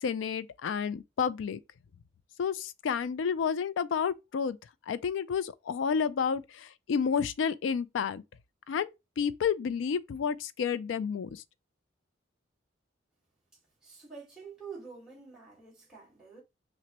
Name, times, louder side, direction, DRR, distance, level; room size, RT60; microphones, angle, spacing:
voice 1, 0.0-1.6 2.4-4.6 4.9-8.2 8.7-8.9 9.2-11.4, left 6 dB, 80° left, 0.3 m, -30 dB
voice 2, 13.8-16.4, right 5 dB, 5° right, 1.6 m, -47 dB
5.9 x 2.1 x 2.9 m
head